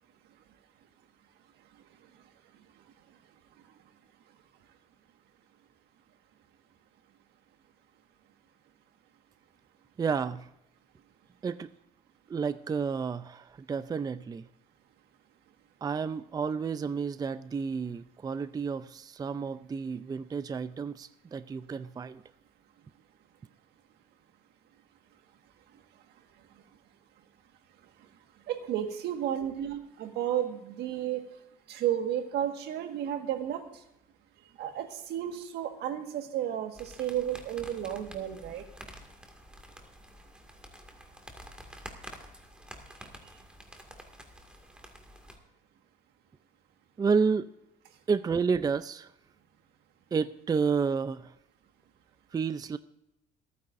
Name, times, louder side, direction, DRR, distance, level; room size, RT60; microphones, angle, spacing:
voice 1, 10.0-10.5 11.4-11.7 12.3-14.5 15.8-22.2 47.0-47.5 48.1-49.1 50.1-51.3 52.3-52.8, right 5 dB, 20° right, 13 dB, 0.4 m, -30 dB
voice 2, 28.5-31.2 31.7-33.6 34.6-38.6, right 10 dB, 80° right, 6 dB, 1.6 m, -32 dB
sound 1, 36.7-45.4, equal, 5° right, 2.1 m, -49 dB
27.5 x 9.6 x 2.6 m, 0.85 s
cardioid pair, 110°, 17 cm